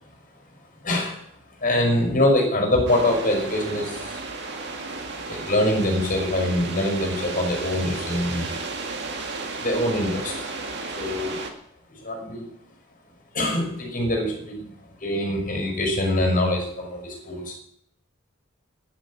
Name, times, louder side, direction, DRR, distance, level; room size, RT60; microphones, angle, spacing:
voice 1, 0.8-1.2 1.6-4.2 5.3-8.5 9.6-10.3 11.0-11.4 12.0-12.5 13.3-14.7 15.0-17.5, left 1 dB, 40° left, 2 dB, 5.7 m, -24 dB
sound 1, 2.9-11.5, right 3 dB, 55° right, 2.2 m, -33 dB
11.0 x 10.5 x 8.6 m, 0.71 s
head